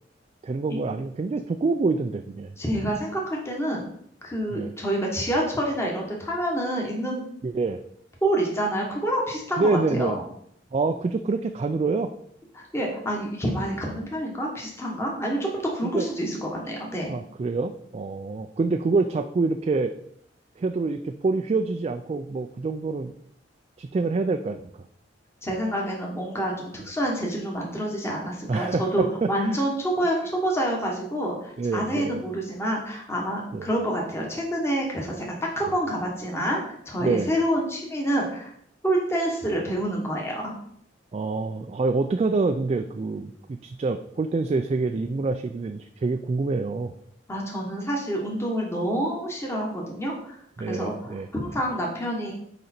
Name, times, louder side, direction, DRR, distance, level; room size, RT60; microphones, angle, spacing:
voice 1, 0.4-2.5 4.5-4.7 7.4-7.8 9.6-10.2 10.7-12.1 15.9-16.1 17.1-19.9 20.6-23.1 23.8-24.8 28.5-29.6 31.6-32.2 33.5-33.7 37.0-37.3 41.1-46.9 50.6-51.3, right 3 dB, 35° right, 7 dB, 0.3 m, -26 dB
voice 2, 2.6-3.8 4.2-7.3 8.2-10.2 12.5-17.1 25.4-38.5 38.8-40.5 47.3-50.4 50.7-52.3, right 1 dB, 15° left, -1 dB, 1.3 m, -27 dB
6.5 x 5.0 x 4.3 m, 0.69 s
head